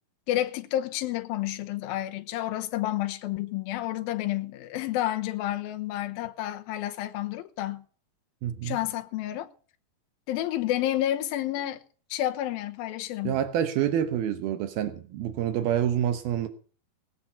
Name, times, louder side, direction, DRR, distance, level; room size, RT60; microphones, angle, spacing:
voice 1, 0.3-7.8 8.6-9.5 10.3-11.8 12.1-13.4, left 13 dB, 75° left, 2.7 m, -30 dB
voice 2, 8.4-8.8 13.2-16.5, right 10 dB, 80° right, 2.9 m, -27 dB
19.0 x 8.9 x 5.7 m
omnidirectional pair, 4.3 m